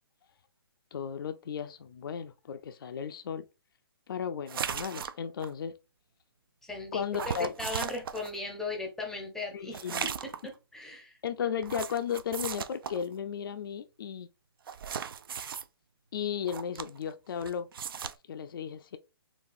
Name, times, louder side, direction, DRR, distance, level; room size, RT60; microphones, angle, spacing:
voice 1, 0.9-3.4 4.1-5.7 6.9-7.5 9.5-10.1 11.2-14.3 16.1-17.7 18.3-19.0, left 8 dB, 60° left, 0.4 m, -35 dB
sound 1, 4.5-5.5 7.1-8.3 9.7-10.5 11.6-13.0 14.7-15.6 16.4-17.1 17.4-18.1, right 7 dB, 65° right, 0.4 m, -37 dB
voice 2, 6.6-11.2, left 2 dB, 5° left, 0.6 m, -38 dB
4.0 x 2.4 x 2.5 m
hypercardioid pair, 150°, 13 cm